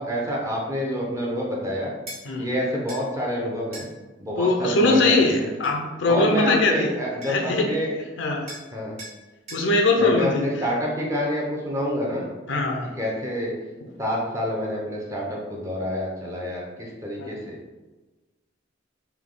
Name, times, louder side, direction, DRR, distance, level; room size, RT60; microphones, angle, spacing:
voice 1, 0.0-1.9 2.4-3.9 4.2-5.5 6.1-7.9 8.7-9.0 10.0-12.3 13.0-13.5 14.0-17.6, equal, 15° right, -3 dB, 0.8 m, -28 dB
sound 1, 2.1-2.2 2.9-3.1 3.7-3.9 5.0-5.8 6.9-7.0 7.2-7.6 8.5-8.7 9.0-9.2 9.5-9.7, right 1 dB, 35° right, 1.3 m, -40 dB
voice 2, 4.4-6.9 7.3-7.7 8.2-8.5 9.5-10.5 12.5-12.9 17.2-17.3, left 2 dB, 70° left, 1 dB, 0.6 m, -21 dB
3.5 x 2.7 x 3.8 m, 1.2 s
head